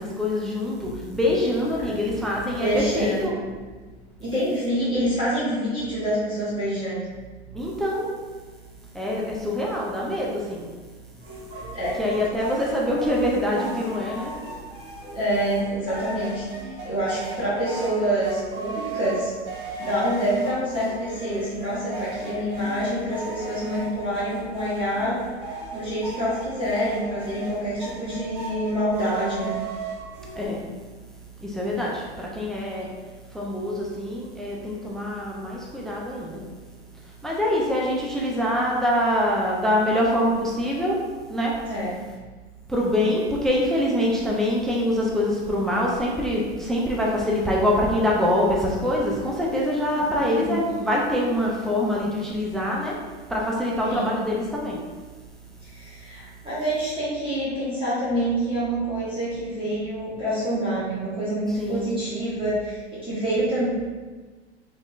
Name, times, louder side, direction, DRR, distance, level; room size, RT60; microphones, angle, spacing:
voice 1, 0.0-3.3 7.5-8.1 8.9-10.7 12.0-14.3 30.4-30.6 31.4-32.9 33.3-36.4 37.2-41.0 41.3-41.5 42.7-53.0 53.3-54.8 61.6-62.0, left 1 dB, ahead, -3 dB, 0.3 m, -24 dB
voice 2, 2.6-3.3 4.2-7.1 11.7-11.9 15.1-16.5 16.8-19.3 19.8-25.2 25.7-29.6 41.7-41.9 50.2-50.6 53.8-54.1 55.6-63.7, equal, 15° right, -11 dB, 1.1 m, -26 dB
sound 1, 11.2-30.5, right 3 dB, 50° right, 1.1 m, -37 dB
3.6 x 3.5 x 2.3 m, 1.3 s
hypercardioid pair, 100°, 34 cm